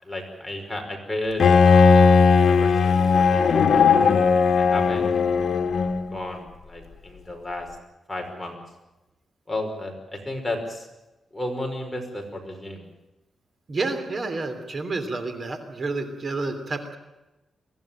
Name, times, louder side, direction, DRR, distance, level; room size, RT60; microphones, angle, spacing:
voice 1, 0.0-3.8 4.6-5.2 6.1-7.7 8.1-8.6 9.5-10.9 11.3-12.8, left 1 dB, 5° left, 1 dB, 5.5 m, -33 dB
Bowed string instrument, 1.4-6.2, left 5 dB, 65° left, 1.7 m, -17 dB
voice 2, 13.7-17.0, right 3 dB, 40° right, 8 dB, 3.1 m, -29 dB
23.5 x 15.0 x 9.0 m, 1.0 s
wide cardioid pair, 115°, 0 cm